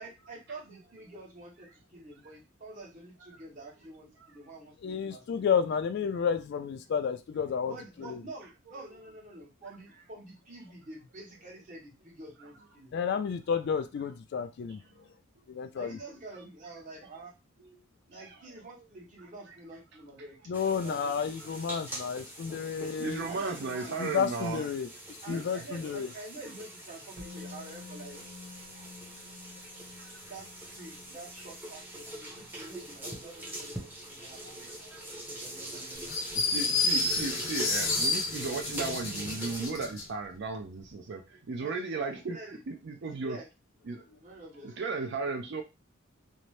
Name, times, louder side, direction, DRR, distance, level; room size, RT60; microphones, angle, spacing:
voice 1, 0.0-5.4 7.6-12.9 15.7-17.3 18.1-21.3 23.3-24.0 24.4-24.7 25.2-28.2 30.3-30.5 30.7-34.5 35.3-36.1 41.6-42.6 43.2-43.5 44.2-44.7, right 2 dB, 40° right, -3 dB, 1.1 m, -47 dB
voice 2, 4.8-8.2 12.9-14.8 15.5-16.0 20.5-23.3 24.0-24.9 25.3-26.1, left 6 dB, 55° left, 10 dB, 0.3 m, -31 dB
sound 1, 20.5-39.7, right 1 dB, 10° right, 0.7 m, -43 dB
voice 3, 23.0-24.6 25.3-25.4 30.0-30.1 34.4-35.2 36.3-43.4 43.9-44.0 44.6-45.6, right 4 dB, 60° right, 3 dB, 0.4 m, -36 dB
Musical instrument, 27.2-35.1 35.3-35.5, left 4 dB, 80° right, 1.0 m, -52 dB
sound 2, 36.1-40.1, left 3 dB, 90° left, 0.8 m, -30 dB
2.7 x 2.1 x 3.1 m, 0.26 s
head